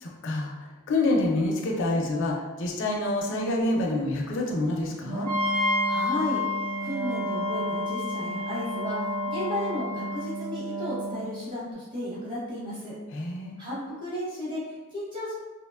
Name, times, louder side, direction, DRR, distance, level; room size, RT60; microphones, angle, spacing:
voice 1, 0.0-5.3 13.1-13.6, left 2 dB, 55° left, -1 dB, 0.4 m, -27 dB
Wind instrument woodwind instrument, 5.0-11.5, right 3 dB, 60° right, 0.3 m, -33 dB
Wind instrument woodwind instrument 2, 5.2-10.2, left 3 dB, 90° right, 1.0 m, -31 dB
voice 2, 5.9-12.9 13.6-15.3, left 1 dB, 20° right, -8 dB, 0.8 m, -34 dB
2.7 x 2.1 x 2.2 m, 1.2 s
head